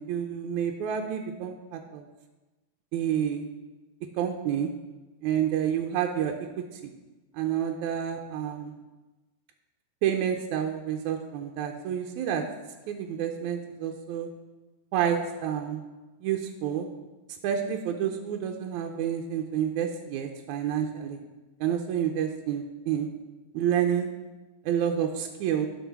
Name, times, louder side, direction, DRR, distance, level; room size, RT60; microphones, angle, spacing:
voice 1, 0.0-2.1 2.9-3.5 4.2-4.7 5.2-6.9 7.3-8.7 10.0-12.5 12.9-14.3 14.9-15.8 16.2-16.9 17.4-21.2 21.6-23.1 23.5-24.1 24.6-25.7, right 9 dB, 85° right, 3 dB, 2.1 m, -29 dB
11.0 x 5.6 x 5.9 m, 1.2 s
omnidirectional pair, 3.4 m